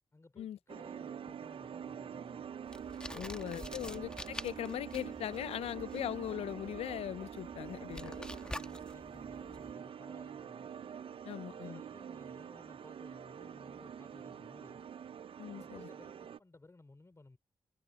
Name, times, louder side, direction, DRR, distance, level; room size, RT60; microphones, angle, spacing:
voice 1, 0.1-2.5 3.3-4.0 7.8-10.7 11.5-14.9 15.5-17.4, left 2 dB, 25° left, 4.1 m, -58 dB
sound 1, 0.7-16.4, right 8 dB, 65° right, 0.5 m, -46 dB
sound 2, 2.7-9.7, left 1 dB, 10° left, 1.3 m, -48 dB
voice 2, 3.1-8.1 11.2-11.8 15.4-15.9, left 11 dB, 80° left, 0.4 m, -40 dB
cardioid pair, 55°, 10 cm